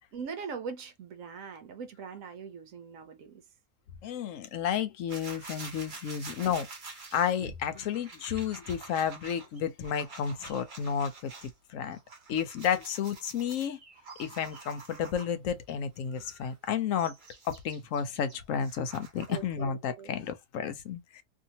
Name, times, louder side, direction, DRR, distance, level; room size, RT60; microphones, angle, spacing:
voice 1, 0.1-3.4 19.3-20.1, right 5 dB, 70° right, 1.1 m, -41 dB
voice 2, 4.0-6.7 7.1-11.3 11.7-12.0 12.3-13.8 14.2-17.1 17.5-21.2, left 8 dB, 70° left, 0.9 m, -32 dB
sound 1, 5.1-11.5 11.9-15.5 16.1-19.5, right 4 dB, 40° right, 0.9 m, -48 dB
2.7 x 2.7 x 2.8 m
omnidirectional pair, 1.5 m